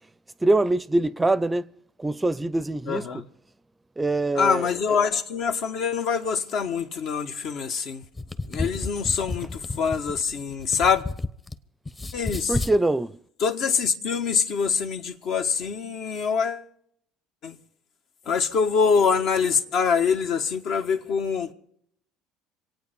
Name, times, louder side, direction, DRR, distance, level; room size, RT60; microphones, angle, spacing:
voice 1, 0.4-1.7 2.0-3.1 4.0-5.0 12.5-13.1, right 2 dB, 15° right, 0.6 m, -23 dB
voice 2, 2.9-3.2 4.3-8.0 8.5-11.0 12.1-12.6 13.4-16.6 17.4-17.6 18.3-21.5, left 6 dB, 60° left, 1.4 m, -24 dB
sound 1, 8.0-11.6 11.9-12.8, left 2 dB, 25° left, 1.0 m, -32 dB
26.5 x 9.1 x 5.3 m
hypercardioid pair, 75°, 0 cm